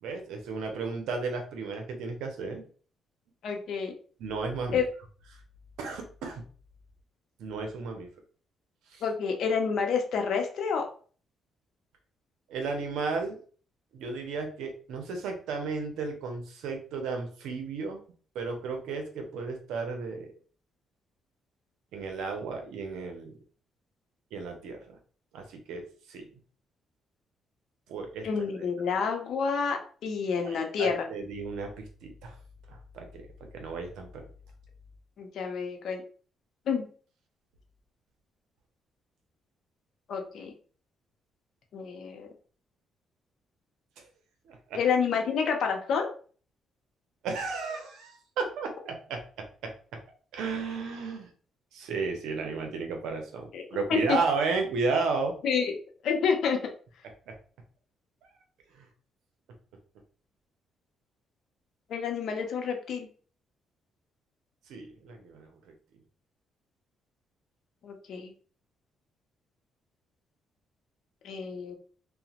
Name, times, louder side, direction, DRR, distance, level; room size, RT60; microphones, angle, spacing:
voice 1, 0.0-2.7 4.2-4.8 5.8-6.4 7.4-8.1 8.9-9.0 12.5-13.4 13.9-18.0 18.3-20.3 21.9-23.3 24.3-25.0 25.3-26.3 27.9-28.3 30.4-32.4 32.7-33.2 33.5-34.1 44.5-44.8 47.2-50.0 50.3-51.3 51.7-55.3 57.3-57.4 58.8-58.9 64.7-65.5, right 4 dB, 85° right, 4 dB, 0.6 m, -33 dB
voice 2, 3.4-3.9 4.7-4.9 9.0-10.9 28.2-31.1 35.2-36.0 36.7-36.8 40.1-40.5 41.7-42.3 44.7-46.1 53.5-53.6 53.9-54.2 55.4-55.7 56.0-56.6 61.9-63.1 67.8-68.3 71.2-71.8, left 6 dB, 70° left, 3 dB, 0.5 m, -29 dB
2.8 x 2.0 x 2.8 m, 0.42 s
cardioid pair, 90°, 0 cm